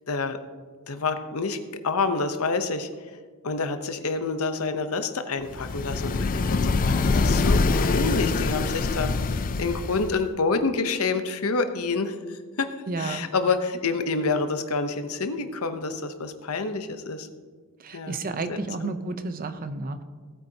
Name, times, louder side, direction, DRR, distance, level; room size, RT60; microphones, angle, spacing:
voice 1, 0.1-0.4 0.9-1.6 1.8-3.1 3.4-12.7 13.0-17.3 17.9-18.2 18.5-18.9, left 4 dB, 70° left, 8 dB, 0.9 m, -28 dB
sound 1, 5.5-10.3, left 3 dB, 40° left, 0.4 m, -24 dB
voice 2, 12.9-13.3 17.8-20.0, right 3 dB, 40° right, 9 dB, 0.7 m, -31 dB
17.5 x 8.5 x 2.9 m, 1.6 s
head